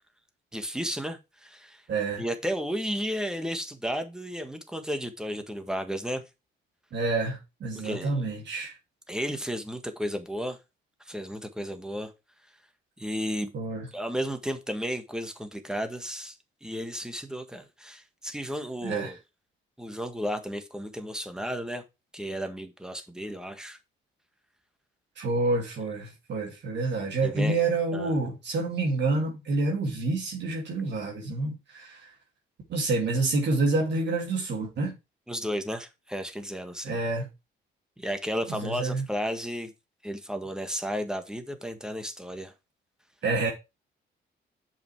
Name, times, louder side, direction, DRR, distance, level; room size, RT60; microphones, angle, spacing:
voice 1, 0.5-1.8 2.2-6.2 7.7-8.2 9.1-10.6 11.0-12.1 13.0-13.5 13.9-16.4 16.6-19.2 19.8-21.8 22.1-23.8 27.2-27.6 27.9-28.2 35.3-37.0 38.0-39.7 40.0-42.5, equal, 5° right, 1.6 m, -33 dB
voice 2, 1.9-2.2 6.9-8.8 13.5-13.9 18.8-19.2 25.2-32.1 32.7-35.0 36.8-37.3 38.5-39.0 43.2-43.5, right 3 dB, 60° right, 2.7 m, -28 dB
6.6 x 5.7 x 4.7 m
cardioid pair, 90°, 20 cm